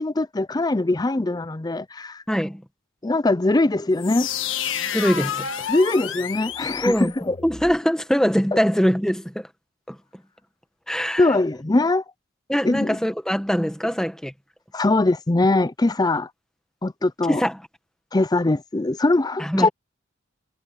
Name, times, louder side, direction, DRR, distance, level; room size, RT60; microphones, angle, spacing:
voice 1, 0.0-2.2 3.0-4.3 5.7-7.4 8.5-8.6 11.2-12.0 12.6-13.0 14.7-16.3 16.8-17.4 18.1-19.7, left 2 dB, 20° left, 0.5 m, -21 dB
voice 2, 2.3-2.6 4.9-5.5 6.8-7.1 7.4-9.5 9.9-10.0 10.9-11.3 12.5-14.3 17.3-17.6 19.4-19.7, equal, 5° left, 1.3 m, -22 dB
sound 1, 4.0-7.8, left 8 dB, 75° left, 1.5 m, -30 dB
head